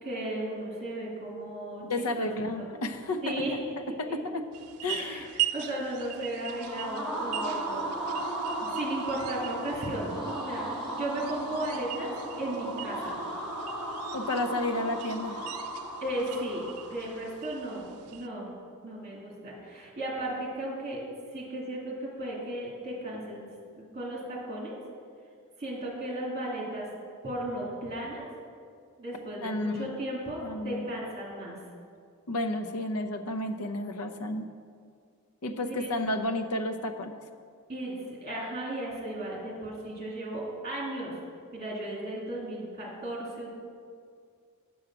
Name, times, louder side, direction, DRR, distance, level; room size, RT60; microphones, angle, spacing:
voice 1, 0.0-1.8 2.2-2.3 2.6-2.7 3.2-3.5 3.9-4.1 5.0-8.2 8.6-12.1 12.4-13.1 16.0-18.5 18.8-21.1 21.3-23.5 23.8-24.8 25.6-26.9 27.2-28.2 29.0-31.6 35.6-35.9 37.7-41.2 41.5-43.6, right 1 dB, 30° right, -3 dB, 2.2 m, -35 dB
voice 2, 1.9-3.4 4.0-4.4 4.8-5.3 14.1-15.4 29.4-29.9 30.4-30.9 32.3-34.5 35.4-37.1, left 2 dB, 80° left, 6 dB, 0.7 m, -31 dB
sound 1, 4.5-18.3, right 14 dB, 85° right, 0.5 m, -41 dB
sound 2, 6.4-17.3, right 1 dB, ahead, 1.2 m, -36 dB
8.8 x 6.4 x 5.9 m, 2.2 s
head